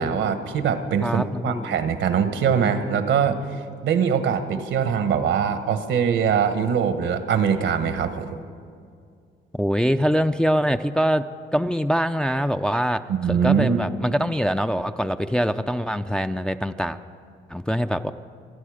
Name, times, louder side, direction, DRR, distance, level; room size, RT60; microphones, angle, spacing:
voice 1, 0.0-3.4 3.8-8.4 13.1-13.8, right 7 dB, 75° right, 9 dB, 1.2 m, -22 dB
voice 2, 1.0-1.8 9.5-11.2 11.5-13.0 13.3-17.0 17.5-18.1, equal, 5° left, 7 dB, 0.4 m, -23 dB
26.5 x 10.0 x 5.0 m, 2.2 s
cardioid pair, 90°, 20 cm